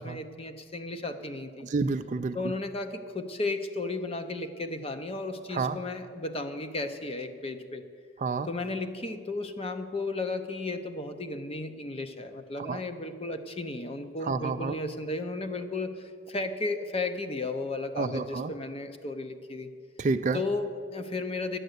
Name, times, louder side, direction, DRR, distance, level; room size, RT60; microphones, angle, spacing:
voice 1, 0.0-1.7 2.3-7.8 8.4-19.7 20.3-21.6, left 2 dB, 30° left, 8 dB, 0.6 m, -34 dB
voice 2, 1.7-2.4 5.5-5.8 8.2-8.5 12.6-12.8 14.3-14.7 18.0-18.5 20.0-20.4, right 4 dB, 35° right, 11 dB, 0.3 m, -29 dB
11.5 x 7.9 x 8.0 m, 2.2 s
head